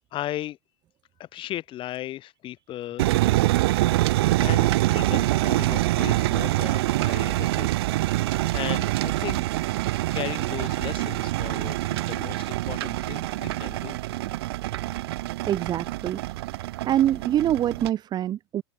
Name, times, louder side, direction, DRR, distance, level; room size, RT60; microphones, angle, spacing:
voice 1, 0.1-0.6 1.2-3.1 4.4-7.7 8.1-9.4 10.1-14.0, left 14 dB, 35° left, 6.4 m, -36 dB
sound 1, 3.0-17.9, right 17 dB, 65° right, 0.4 m, -25 dB
voice 2, 15.5-16.2 16.8-18.6, right 11 dB, 30° right, 1.1 m, -24 dB
hypercardioid pair, 110°, 14 cm